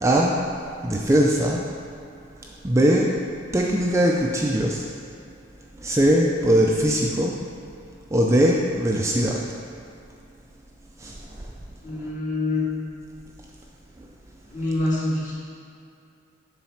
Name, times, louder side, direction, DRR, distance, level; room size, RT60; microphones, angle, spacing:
voice 1, 0.0-0.4 0.8-1.6 2.6-3.1 3.5-4.8 5.8-7.4 8.1-9.4 11.0-11.1, right 1 dB, 15° right, -2 dB, 0.4 m, -20 dB
voice 2, 11.8-12.7 14.5-15.3, left 2 dB, 40° left, -7 dB, 1.8 m, -25 dB
7.3 x 4.0 x 5.7 m, 2.5 s
head